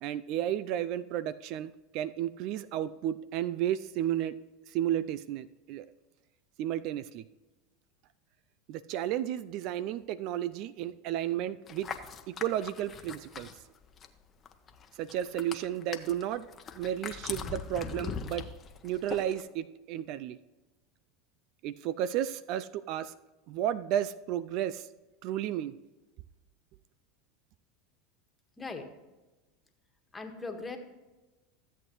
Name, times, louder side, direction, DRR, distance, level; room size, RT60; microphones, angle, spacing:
voice 1, 0.0-4.4 4.7-5.9 6.6-7.2 8.7-11.9 12.3-13.5 14.9-16.5 16.8-18.5 18.8-20.4 21.6-23.1 23.5-24.9 25.2-25.7, right 11 dB, 55° right, 16 dB, 0.4 m, -33 dB
sound 1, 11.7-14.2 14.5-19.4, left 6 dB, 35° left, 0.9 m, -41 dB
voice 2, 30.1-30.8, left 3 dB, 15° left, 5 dB, 1.6 m, -39 dB
13.5 x 7.9 x 3.1 m, 1.1 s
hypercardioid pair, 90°, 0 cm